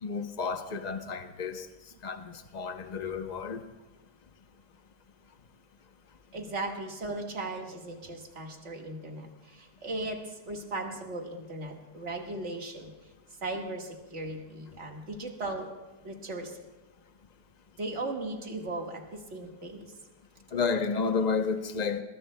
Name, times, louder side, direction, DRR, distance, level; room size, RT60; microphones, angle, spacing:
voice 1, 0.0-1.7 2.0-3.6 20.5-22.0, left 5 dB, 35° left, 0.7 m, -31 dB
voice 2, 6.3-12.9 13.4-15.7 16.0-16.6 17.8-19.9, right 2 dB, 45° right, 2.0 m, -37 dB
21.0 x 21.0 x 2.2 m
omnidirectional pair, 1.8 m